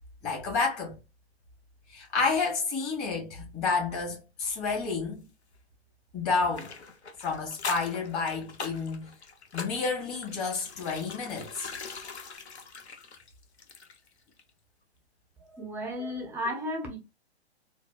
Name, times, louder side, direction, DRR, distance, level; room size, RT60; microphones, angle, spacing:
voice 1, 0.2-1.0 1.9-5.2 6.1-6.7 7.2-9.1 9.5-11.7, left 4 dB, 30° left, 1.8 m, -30 dB
sound 1, 6.5-14.1 14.4-14.5, left 5 dB, 80° left, 0.8 m, -42 dB
voice 2, 15.4-17.0, equal, 5° right, 0.4 m, -34 dB
3.9 x 2.2 x 2.4 m
figure-of-eight pair, 120°, 33 cm